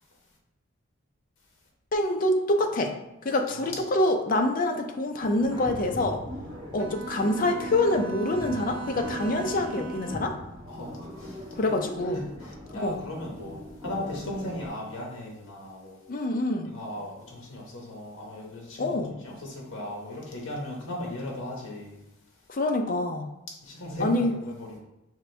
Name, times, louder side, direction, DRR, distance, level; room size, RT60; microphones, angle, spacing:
voice 1, 1.9-2.9 3.2-6.2 6.7-10.3 11.6-12.2 12.7-13.0 16.1-16.7 18.8-19.2 22.5-23.3 24.0-24.4, left 1 dB, 40° left, 4 dB, 0.5 m, -26 dB
sound 1, 5.2-14.7, left 1 dB, 20° right, 1.1 m, -40 dB
Bowed string instrument, 6.8-10.4, right 4 dB, 60° right, 0.4 m, -38 dB
voice 2, 10.7-11.7 12.1-16.0 16.7-19.0 19.2-22.0 23.6-24.8, left 1 dB, 75° left, -1 dB, 1.0 m, -37 dB
5.8 x 2.6 x 3.3 m, 0.93 s
head